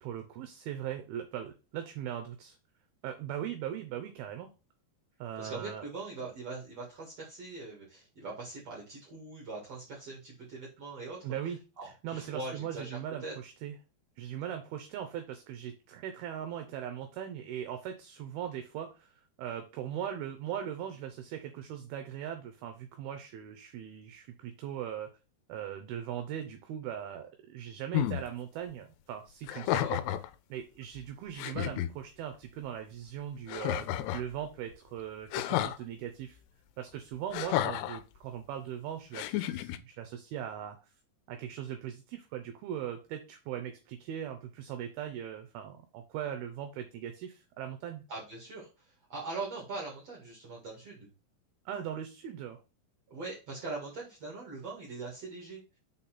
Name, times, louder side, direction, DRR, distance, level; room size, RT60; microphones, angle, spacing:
voice 1, 0.0-2.6 3.0-4.5 5.2-5.9 11.2-11.6 12.0-13.7 14.2-19.1 19.4-25.1 25.5-30.0 30.5-36.4 36.8-40.8 41.3-48.0 51.7-52.6, right 10 dB, 75° right, 6 dB, 2.5 m, -39 dB
voice 2, 5.4-11.2 11.8-13.3 29.6-29.9 48.1-51.1 53.1-55.6, right 3 dB, 50° right, -4 dB, 2.4 m, -42 dB
sound 1, 27.9-28.2 29.4-30.3 31.0-31.1 31.4-31.9 33.5-34.3 35.3-35.8 37.3-38.0 39.1-39.8, left 13 dB, 90° left, 2.7 m, -31 dB
6.1 x 4.1 x 5.8 m, 0.31 s
omnidirectional pair, 4.7 m